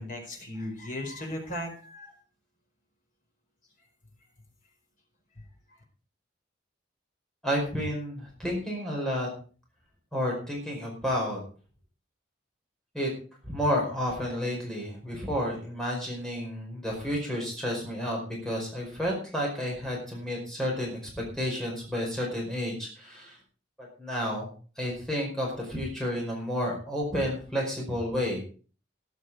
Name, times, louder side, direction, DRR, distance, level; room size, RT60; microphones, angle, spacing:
voice 1, 0.0-2.1, left 1 dB, 40° left, 1 dB, 4.8 m, -36 dB
voice 2, 7.4-9.3 10.1-11.4 12.9-13.1 13.4-23.4 23.8-24.5 24.8-28.4, equal, 5° left, -2 dB, 4.9 m, -31 dB
13.5 x 11.0 x 4.8 m, 0.39 s
head